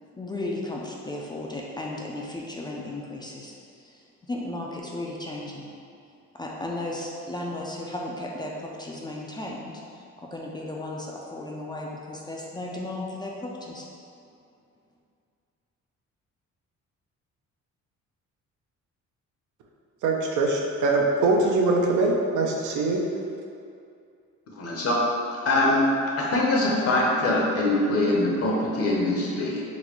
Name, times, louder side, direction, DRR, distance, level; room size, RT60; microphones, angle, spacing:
voice 1, 0.2-3.5 3.8-5.7 6.3-13.8, left 1 dB, 15° left, -3 dB, 0.3 m, -35 dB
voice 2, 20.0-23.0, right 3 dB, 80° right, 0 dB, 0.6 m, -23 dB
voice 3, 24.5-25.0 25.5-25.9 26.2-29.6, left 2 dB, 50° left, -3 dB, 0.8 m, -23 dB
3.9 x 2.1 x 2.9 m, 2.4 s
cardioid pair, 90°, 30 cm